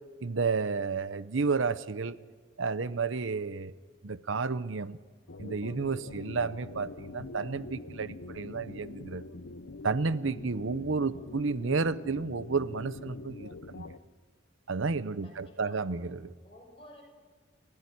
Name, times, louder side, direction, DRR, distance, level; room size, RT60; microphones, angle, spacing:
voice 1, 0.2-2.2 2.6-3.7 4.0-5.0 5.4-9.2 9.8-13.9 14.7-16.3, right 4 dB, 80° right, 15 dB, 0.8 m, -31 dB
sound 1, 5.3-14.0, left 2 dB, 70° left, 0.9 m, -44 dB
voice 2, 11.1-11.4 15.2-15.9 16.4-17.0, left 1 dB, 30° left, 1 dB, 6.6 m, -53 dB
29.5 x 16.0 x 9.9 m, 1.5 s
head